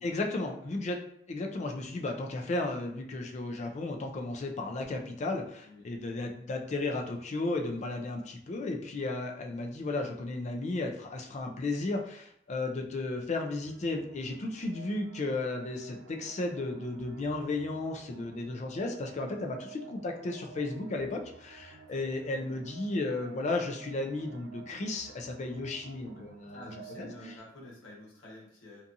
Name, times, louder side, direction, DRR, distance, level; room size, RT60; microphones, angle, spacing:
voice 1, 0.0-26.6 27.0-27.1, left 2 dB, 40° left, 3 dB, 0.4 m, -34 dB
voice 2, 5.6-5.9 21.9-22.7 26.5-28.8, left 1 dB, 85° left, -4 dB, 1.1 m, -50 dB
sound 1, 13.6-27.4, right 6 dB, 80° right, 0.3 m, -52 dB
2.7 x 2.4 x 2.5 m, 0.69 s
head